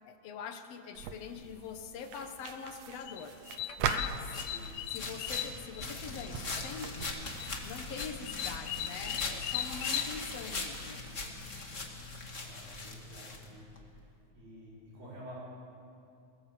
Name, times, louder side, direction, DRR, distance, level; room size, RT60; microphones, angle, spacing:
voice 1, 0.0-3.4 3.8-4.3 4.9-7.2 7.6-11.0, left 6 dB, 60° left, 7 dB, 1.8 m, -43 dB
sound 1, 0.9-7.0, right 7 dB, 80° right, 1.5 m, -40 dB
sound 2, 3.0-6.3 6.6-7.1 7.4-10.1, left 12 dB, 80° left, 2.6 m, -38 dB
sound 3, 3.8-13.8, left 3 dB, 30° left, 1.4 m, -41 dB
voice 2, 12.4-13.7 14.3-15.4, equal, 65° right, -7 dB, 6.6 m, -50 dB
22.0 x 18.5 x 7.7 m, 2.5 s
omnidirectional pair, 4.3 m